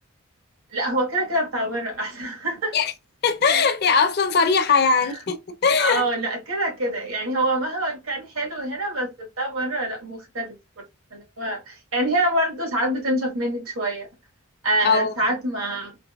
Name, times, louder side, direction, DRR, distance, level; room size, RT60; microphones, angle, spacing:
voice 1, 0.7-2.7 4.7-5.2 5.8-10.8 11.1-14.1 14.6-16.0, right 1 dB, 80° right, 1.4 m, -26 dB
voice 2, 3.2-6.0 14.8-15.1, left 5 dB, 50° left, 0.5 m, -20 dB
4.1 x 2.6 x 2.3 m
head